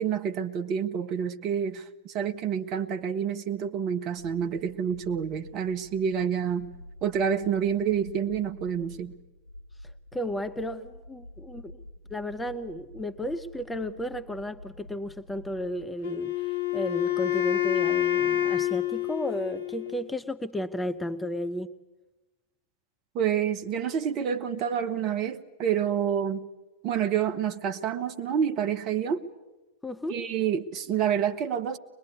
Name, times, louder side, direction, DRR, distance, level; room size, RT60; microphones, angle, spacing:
voice 1, 0.0-6.7 7.0-9.1 23.1-26.5 26.8-29.2 30.1-31.8, right 8 dB, 35° right, 1.1 m, -28 dB
sound 1, 4.1-15.9, left 1 dB, 90° right, 7.9 m, -48 dB
voice 2, 10.1-11.8 12.1-21.7 29.8-30.2, equal, 5° left, 0.9 m, -33 dB
Wind instrument woodwind instrument, 16.0-20.1, left 11 dB, 60° left, 0.9 m, -27 dB
23.5 x 21.0 x 9.4 m
figure-of-eight pair, 90°, 0 cm